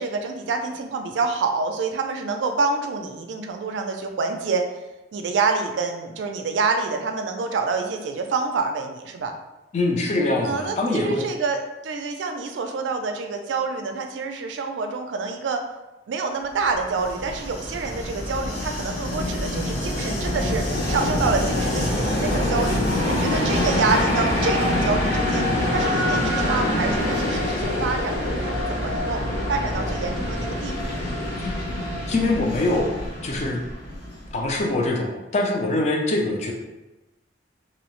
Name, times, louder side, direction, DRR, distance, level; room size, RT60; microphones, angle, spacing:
voice 1, 0.0-4.7 5.1-9.3 10.4-15.6 16.1-22.8 23.1-25.5 25.7-29.2 29.5-30.9, right 4 dB, 80° right, 5 dB, 0.4 m, -27 dB
voice 2, 9.7-11.3 31.4-31.7 32.1-33.0 33.2-33.6 34.3-36.5, left 2 dB, 40° left, 0 dB, 0.4 m, -23 dB
Train, 16.7-34.5, left 1 dB, 60° left, 1.0 m, -25 dB
2.7 x 2.0 x 2.9 m, 1.0 s
head